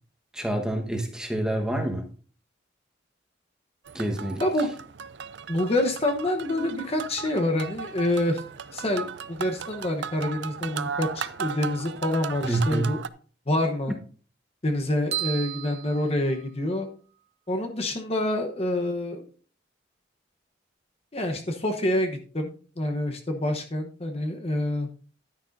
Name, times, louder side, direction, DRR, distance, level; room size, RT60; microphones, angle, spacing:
voice 1, 0.3-2.1 3.9-4.4 12.4-12.9, right 1 dB, 5° right, 1.2 m, -27 dB
sound 1, 3.8-13.1, right 6 dB, 70° right, 0.5 m, -36 dB
voice 2, 4.4-4.7 5.5-8.4 8.7-13.0 13.5-13.9 14.6-16.9 17.5-19.2 21.1-24.9, left 1 dB, 35° left, 0.9 m, -27 dB
sound 2, 15.1-16.9, right 15 dB, 35° right, 1.1 m, -34 dB
11.0 x 9.8 x 2.6 m
head